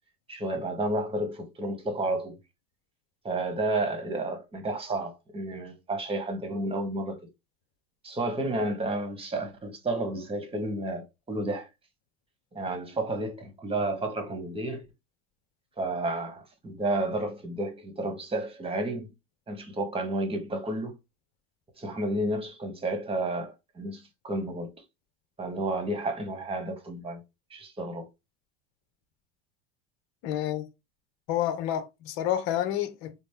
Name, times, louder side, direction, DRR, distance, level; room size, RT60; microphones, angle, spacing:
voice 1, 0.3-2.4 3.2-7.2 8.0-11.7 12.5-14.8 15.8-19.1 19.5-21.0 21.8-24.7 25.4-27.2 27.5-28.1, right 2 dB, 20° right, 1.3 m, -31 dB
voice 2, 30.2-30.6 31.3-33.1, left 11 dB, 55° left, 0.8 m, -29 dB
4.2 x 2.1 x 3.4 m
hypercardioid pair, 80°, 31 cm